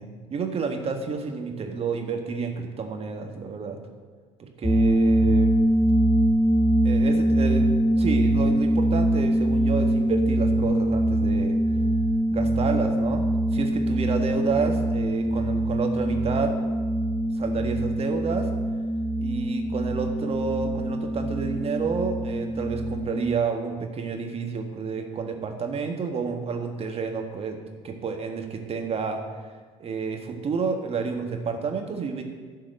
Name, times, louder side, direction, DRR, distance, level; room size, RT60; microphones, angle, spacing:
voice 1, 0.0-3.8 4.4-5.5 6.8-7.7 8.0-11.6 12.3-13.2 13.5-16.6 17.3-18.5 19.2-27.6 27.8-29.2 29.8-32.2, right 5 dB, 40° right, 4 dB, 1.6 m, -30 dB
sound 1, 4.6-23.3, right 1 dB, 15° left, 0.7 m, -23 dB
12.0 x 4.7 x 7.7 m, 1.5 s
hypercardioid pair, 65°, 15 cm